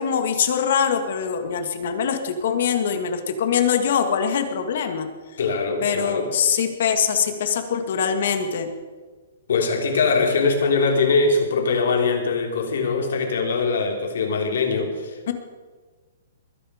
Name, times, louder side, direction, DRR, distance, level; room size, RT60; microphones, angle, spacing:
voice 1, 0.0-5.1 5.8-8.7 15.3-15.4, left 7 dB, 55° left, 7 dB, 1.8 m, -23 dB
voice 2, 5.4-6.3 9.5-15.3, left 4 dB, 75° left, 2 dB, 3.6 m, -22 dB
21.5 x 10.0 x 5.0 m, 1.4 s
hypercardioid pair, 165°, 0 cm